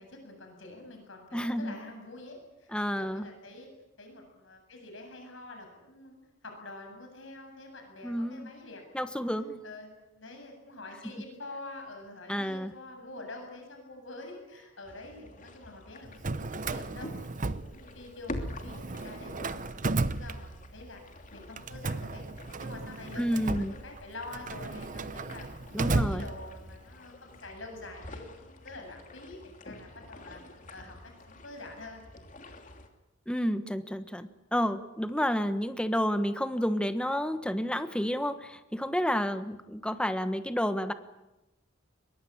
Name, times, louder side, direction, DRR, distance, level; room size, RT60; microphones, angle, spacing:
voice 1, 0.0-3.7 4.0-6.2 6.4-8.8 9.2-9.3 9.6-21.0 21.3-22.2 22.6-25.5 25.7-32.1, left 2 dB, 70° left, 3 dB, 7.7 m, -46 dB
voice 2, 1.3-1.7 2.7-3.3 8.0-8.5 8.9-9.6 12.3-12.7 23.2-23.7 25.7-26.2 33.3-40.9, equal, 5° left, 10 dB, 1.3 m, -30 dB
sound 1, 14.8-32.9, left 1 dB, 40° left, 3.0 m, -47 dB
Drawer open or close, 16.1-18.2 18.5-20.9 21.6-26.8, right 3 dB, 40° right, 0.8 m, -34 dB
23.0 x 22.5 x 8.7 m, 0.98 s
head